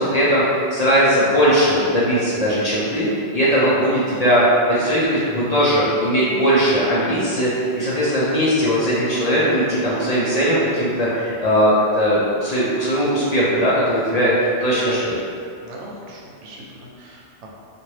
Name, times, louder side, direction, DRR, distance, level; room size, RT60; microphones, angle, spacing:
voice 1, 0.0-15.1, equal, 50° left, -9 dB, 0.5 m, -19 dB
voice 2, 15.6-17.5, right 1 dB, 90° right, -3 dB, 1.0 m, -40 dB
2.8 x 2.5 x 3.1 m, 2.4 s
omnidirectional pair, 1.2 m